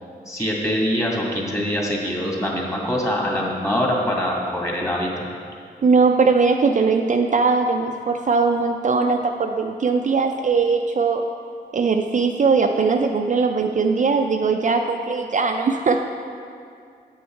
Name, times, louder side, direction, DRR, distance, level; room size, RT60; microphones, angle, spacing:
voice 1, 0.3-5.2, equal, 15° left, -2 dB, 1.9 m, -24 dB
voice 2, 5.8-11.2 11.7-16.0, right 4 dB, 45° right, 3 dB, 0.5 m, -20 dB
8.6 x 6.3 x 4.5 m, 2.3 s
cardioid pair, 70°, 18 cm